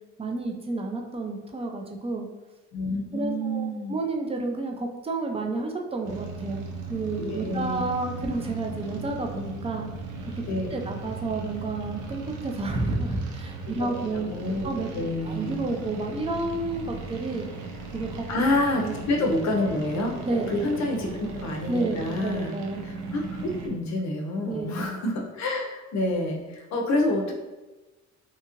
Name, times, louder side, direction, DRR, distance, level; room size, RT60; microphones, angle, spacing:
voice 1, 0.2-2.3 3.1-6.6 6.9-9.9 10.2-10.3 10.7-14.3 14.6-14.9 15.2-17.5 17.9-18.3 18.8-18.9 20.2-20.5 21.0-21.2 21.7-22.8 24.5-24.9, right 2 dB, 20° right, 2 dB, 0.4 m, -30 dB
voice 2, 2.7-4.0 7.2-7.8 10.5-10.7 13.8-15.6 18.3-20.1 20.5-22.5 23.1-27.3, left 1 dB, 65° left, 0 dB, 0.6 m, -28 dB
sound 1, 6.0-23.7, right 4 dB, 80° right, 0.6 m, -37 dB
2.8 x 2.4 x 2.8 m, 1.2 s
cardioid pair, 90°, 30 cm